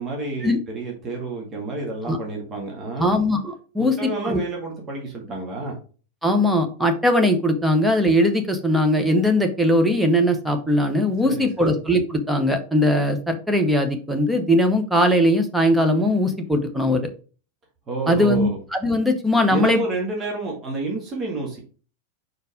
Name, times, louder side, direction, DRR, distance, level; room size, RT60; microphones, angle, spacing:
voice 1, 0.0-3.2 3.8-5.7 11.2-11.8 17.9-18.6 19.5-21.6, right 2 dB, 25° right, -1 dB, 2.0 m, -29 dB
voice 2, 3.0-4.4 6.2-17.1 18.1-19.8, left 1 dB, 5° right, 5 dB, 1.1 m, -20 dB
4.8 x 4.6 x 5.0 m, 0.38 s
figure-of-eight pair, 90°, 0 cm